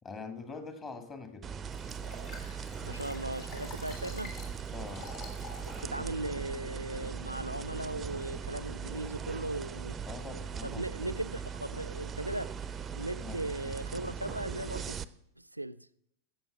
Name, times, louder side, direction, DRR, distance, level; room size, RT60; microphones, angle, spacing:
voice 1, 0.0-1.5 4.7-5.1 10.0-10.8 13.2-13.4, left 4 dB, 25° left, 1.9 m, -43 dB
sound 1, 1.4-15.0, right 7 dB, 20° right, 0.5 m, -40 dB
Liquid, 1.7-5.9 6.4-6.5, left 3 dB, 50° left, 3.4 m, -48 dB
voice 2, 2.8-4.4 5.8-10.0 10.3-12.5 13.0-15.0 15.4-15.9, right 1 dB, 85° right, 0.4 m, -38 dB
12.0 x 7.8 x 5.9 m
figure-of-eight pair, 90°, 0 cm